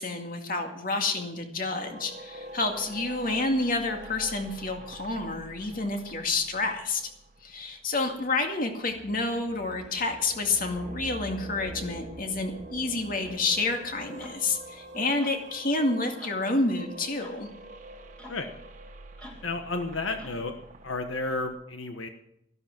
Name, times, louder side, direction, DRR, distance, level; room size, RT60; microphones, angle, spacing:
voice 1, 0.0-7.1 7.4-17.5, left 3 dB, 45° left, 4 dB, 2.2 m, -29 dB
sound 1, 1.8-8.6 8.9-21.6, right 1 dB, 40° right, 1.4 m, -45 dB
sound 2, 13.2-13.4 14.2-14.4 15.2-15.4 16.2-16.4 17.2-17.4 18.2-18.4 19.2-19.5 20.2-20.5, left 1 dB, 5° left, 2.6 m, -46 dB
voice 2, 19.4-20.5 20.8-22.1, left 3 dB, 80° left, 6 dB, 1.3 m, -32 dB
14.0 x 12.5 x 6.1 m, 0.76 s
head